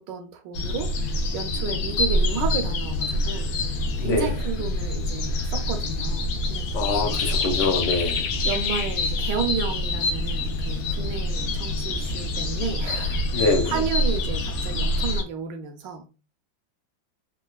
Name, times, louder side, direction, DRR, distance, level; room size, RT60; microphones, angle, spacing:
voice 1, 0.0-7.4 8.4-16.1, right 6 dB, 75° right, 1.2 m, -32 dB
sound 1, 0.5-15.2, left 2 dB, 90° left, 1.5 m, -26 dB
voice 2, 4.0-4.3 6.7-8.2 13.3-13.8, left 3 dB, 75° left, 1.1 m, -24 dB
4.2 x 2.2 x 2.2 m
omnidirectional pair, 2.1 m